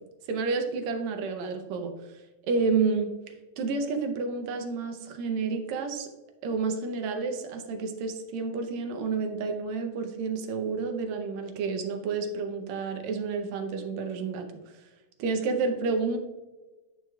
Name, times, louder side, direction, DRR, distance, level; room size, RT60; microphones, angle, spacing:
voice 1, 0.3-1.9 2.5-3.1 3.6-6.1 6.4-14.5 15.2-16.2, right 4 dB, 75° right, 5 dB, 1.8 m, -30 dB
9.4 x 4.7 x 2.2 m, 1.1 s
omnidirectional pair, 3.5 m